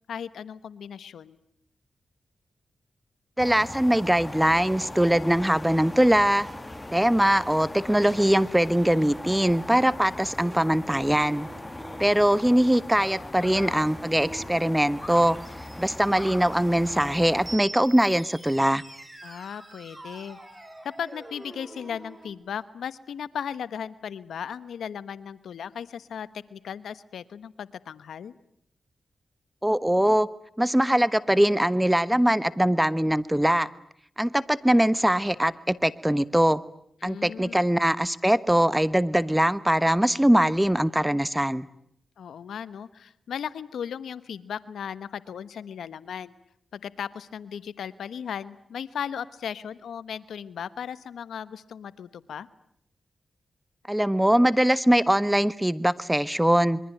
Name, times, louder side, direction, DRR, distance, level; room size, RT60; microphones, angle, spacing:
voice 1, 0.1-1.4 13.4-13.8 19.2-20.4 20.8-28.3 37.0-37.6 42.2-46.3 46.7-52.5, left 8 dB, 90° left, 15 dB, 1.1 m, -36 dB
sound 1, 3.4-17.6, left 2 dB, 20° left, 1.8 m, -39 dB
voice 2, 3.4-6.5 6.9-11.5 12.0-15.4 15.8-18.8 29.6-30.3 30.6-33.7 34.2-36.6 37.0-41.7 53.9-56.8, right 1 dB, 10° right, 16 dB, 1.2 m, -22 dB
sound 2, 10.4-22.3, right 2 dB, 25° right, 5.8 m, -46 dB
26.0 x 23.0 x 9.1 m, 0.69 s
cardioid pair, 55°, 0 cm